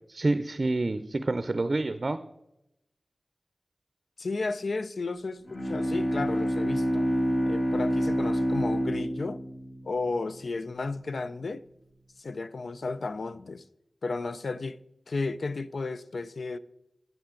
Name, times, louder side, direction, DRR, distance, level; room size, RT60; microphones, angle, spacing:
voice 1, 0.1-2.2, right 2 dB, 60° right, 0.5 m, -28 dB
voice 2, 4.2-7.1 7.4-9.4 9.8-11.6 12.2-13.6 14.0-14.8 15.1-16.6, left 3 dB, 85° left, 0.4 m, -33 dB
Bowed string instrument, 5.4-10.5, equal, 55° left, 1.4 m, -28 dB
8.9 x 8.7 x 3.8 m
cardioid pair, 40°, 0 cm